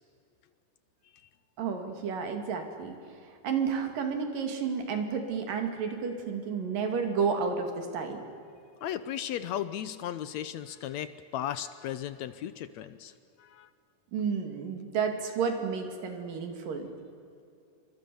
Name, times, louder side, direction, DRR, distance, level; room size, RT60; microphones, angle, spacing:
voice 1, 1.6-3.0 3.4-8.2 14.1-16.9, right 6 dB, 90° right, 5 dB, 4.2 m, -31 dB
voice 2, 8.8-13.1 13.4-13.7, left 10 dB, 70° left, 14 dB, 1.8 m, -36 dB
28.5 x 24.5 x 7.0 m, 2.6 s
omnidirectional pair, 3.8 m